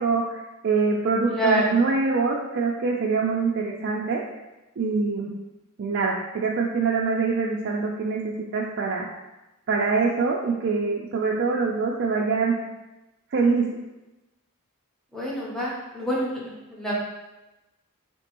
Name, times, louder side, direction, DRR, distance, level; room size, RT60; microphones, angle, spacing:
voice 1, 0.0-4.2 4.8-5.3 5.8-9.1 9.7-12.6 13.3-13.7, right 4 dB, 50° right, -2 dB, 0.4 m, -24 dB
voice 2, 1.3-1.8 15.1-16.9, right 1 dB, ahead, -6 dB, 0.8 m, -27 dB
4.3 x 2.9 x 2.9 m, 1.0 s
head